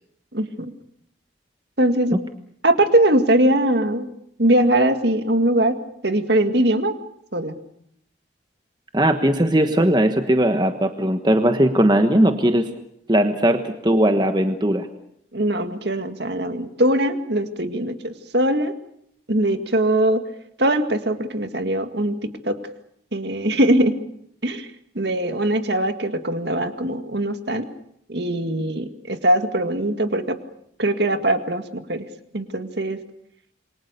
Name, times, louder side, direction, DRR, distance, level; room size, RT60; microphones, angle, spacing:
voice 1, 0.3-0.7 1.8-2.2 2.6-4.1 4.4-5.8 6.0-6.9 7.3-7.6 15.3-18.7 19.3-20.2 20.6-22.2 22.4-22.6 23.1-23.9 24.4-24.7 25.0-27.7 28.1-30.4 30.8-32.1 32.3-33.0, right 1 dB, 60° right, 8 dB, 2.0 m, -21 dB
voice 2, 8.9-12.7 13.1-14.9, right 1 dB, 20° right, 7 dB, 1.3 m, -18 dB
28.0 x 23.0 x 6.7 m, 0.72 s
head